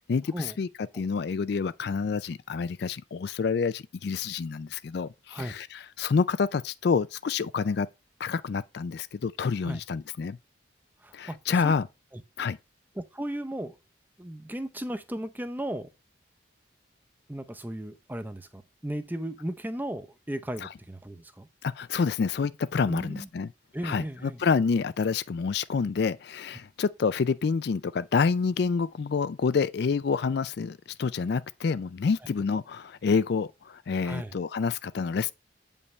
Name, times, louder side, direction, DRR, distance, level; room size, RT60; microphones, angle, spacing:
voice 1, 0.1-0.7 0.9-7.9 8.2-10.4 11.1-11.9 12.4-12.6 20.6-20.7 21.6-23.5 23.8-35.3, left 5 dB, 55° left, 0.4 m, -28 dB
voice 2, 11.0-11.4 11.6-11.7 12.1-12.2 12.9-13.8 14.2-15.9 17.3-21.5 22.9-23.3 23.7-24.4 34.0-34.3, right 1 dB, 10° right, 0.6 m, -36 dB
8.3 x 5.5 x 3.1 m
head